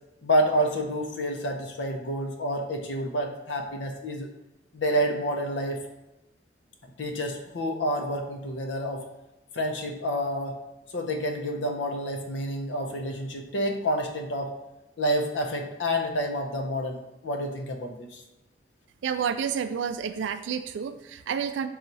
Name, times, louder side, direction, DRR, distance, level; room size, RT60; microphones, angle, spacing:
voice 1, 0.2-4.3 4.7-5.8 7.0-9.0 9.5-10.6 10.9-14.5 15.0-18.2, equal, 75° left, 3 dB, 0.6 m, -28 dB
voice 2, 19.0-21.7, right 7 dB, 75° right, 10 dB, 0.3 m, -30 dB
4.2 x 2.3 x 3.9 m, 0.95 s
head